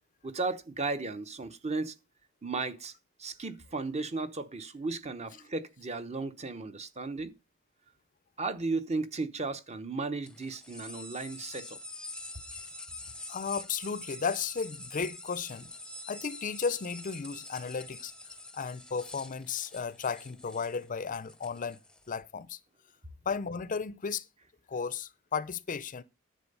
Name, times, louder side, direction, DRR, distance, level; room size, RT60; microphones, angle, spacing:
voice 1, 0.2-1.9 2.4-2.9 3.2-7.3 8.4-11.8, right 3 dB, 30° right, 0.9 m, -35 dB
sound 1, 10.3-22.2, left 2 dB, 5° left, 0.8 m, -46 dB
voice 2, 13.3-15.7 16.1-18.1 18.5-21.8 22.1-22.6 23.3-24.3 24.7-26.0, left 5 dB, 40° left, 0.6 m, -34 dB
10.0 x 7.5 x 5.5 m
head